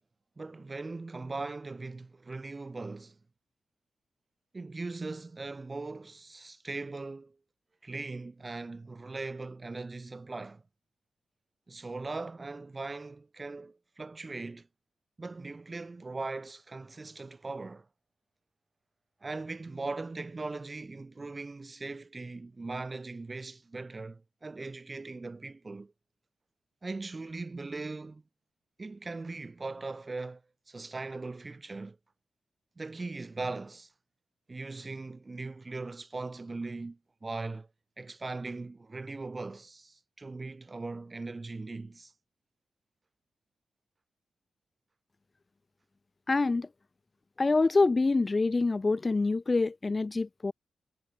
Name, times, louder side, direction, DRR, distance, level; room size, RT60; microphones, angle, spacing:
voice 1, 0.4-3.2 4.5-7.4 7.8-10.6 11.7-14.7 15.2-17.9 19.2-25.9 26.8-28.2 28.8-30.4 30.7-32.0 32.8-33.9 34.5-37.7 38.0-42.1, right 3 dB, 35° right, 5.9 m, -39 dB
voice 2, 46.3-46.7 47.4-50.5, left 3 dB, 35° left, 0.4 m, -26 dB
supercardioid pair, 40°, 0 cm